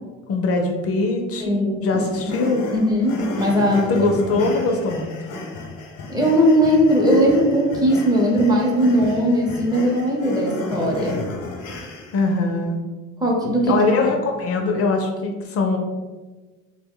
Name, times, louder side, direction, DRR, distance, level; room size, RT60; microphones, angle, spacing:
voice 1, 0.3-1.5 1.8-2.6 3.9-5.1 12.1-12.8 13.7-15.8, left 3 dB, 50° left, 2 dB, 0.5 m, -22 dB
voice 2, 1.4-2.4 2.7-4.1 4.3-4.5 6.1-11.4 13.2-14.1, equal, 15° right, -2 dB, 0.6 m, -19 dB
sound 1, 2.2-12.3, left 2 dB, 90° left, 0.7 m, -34 dB
3.1 x 2.1 x 3.6 m, 1.3 s
cardioid pair, 130°, 30 cm